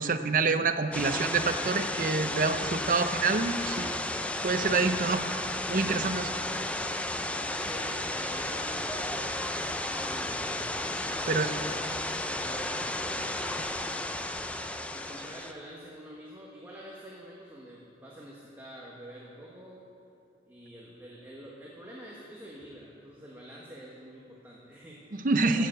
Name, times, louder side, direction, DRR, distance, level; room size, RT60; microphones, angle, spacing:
voice 1, 0.0-4.0 4.4-5.2 5.7-6.3 11.3-11.5 25.2-25.7, right 4 dB, 50° right, 9 dB, 0.7 m, -27 dB
sound 1, 0.9-15.5, left 1 dB, 10° left, 0.5 m, -33 dB
voice 2, 7.6-9.1 9.8-10.7 11.0-14.5 14.9-19.9 20.4-25.7, right 1 dB, 15° right, -4 dB, 1.4 m, -47 dB
15.5 x 6.8 x 7.8 m, 2.7 s
head